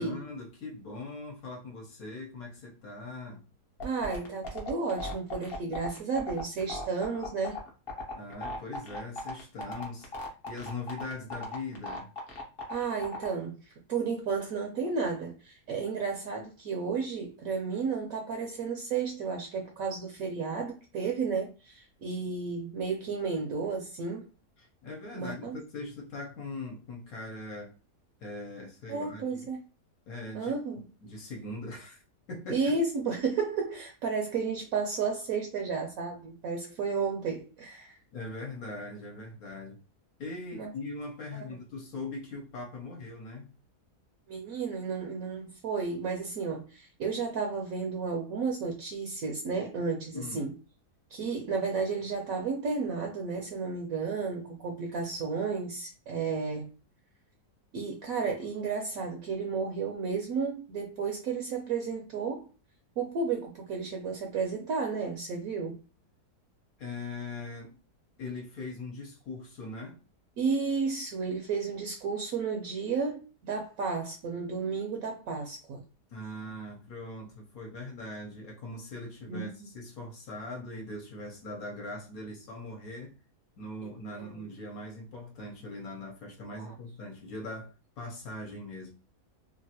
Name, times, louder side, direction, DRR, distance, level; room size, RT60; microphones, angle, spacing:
voice 1, 0.0-3.4 8.1-10.1 10.5-12.1 24.6-27.7 28.2-29.5 30.1-30.5 31.0-32.0 32.3-32.8 38.1-39.8 40.2-43.5 50.1-50.5 66.8-67.8 68.2-70.0 76.1-83.1 83.6-88.9, left 2 dB, 65° left, 1.1 m, -41 dB
sound 1, 3.8-13.3, left 2 dB, 45° left, 0.8 m, -37 dB
voice 2, 3.8-7.6 12.7-13.6 13.9-24.3 25.1-25.6 28.9-29.6 30.3-30.8 32.5-38.0 40.5-40.7 44.3-50.5 51.1-56.7 57.7-62.5 63.0-65.8 70.4-75.8 79.3-79.7 83.8-83.9 84.2-84.3 86.6-86.7, right 5 dB, 70° right, 0.9 m, -32 dB
3.0 x 2.4 x 2.7 m
omnidirectional pair, 1.8 m